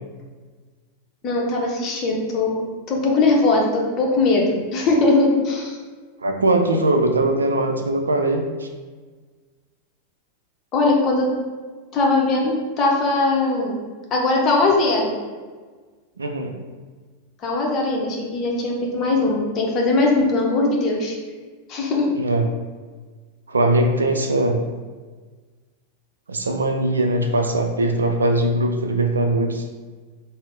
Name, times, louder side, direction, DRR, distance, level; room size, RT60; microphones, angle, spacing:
voice 1, 1.2-5.8 10.7-11.3 11.9-13.7 14.1-15.1 17.4-21.2 21.7-22.1, left 2 dB, 30° left, -2 dB, 0.8 m, -20 dB
voice 2, 6.2-8.7 16.2-16.6 22.1-22.5 23.5-24.6 26.3-29.7, right 2 dB, 75° right, 4 dB, 0.4 m, -20 dB
3.7 x 2.0 x 3.6 m, 1.4 s
figure-of-eight pair, 90°, 0 cm